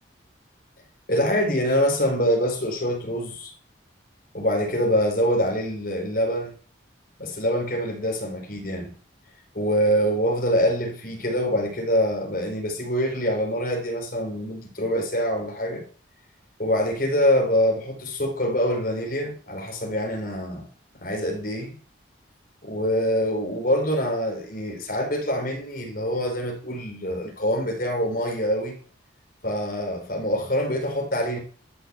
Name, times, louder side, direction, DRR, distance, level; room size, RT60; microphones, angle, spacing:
voice 1, 1.1-3.5 4.3-6.5 7.2-8.9 9.5-15.8 16.6-20.7 21.0-21.8 22.6-28.7 29.4-31.4, equal, 45° left, 4.3 m, -25 dB
12.5 x 6.5 x 8.1 m
head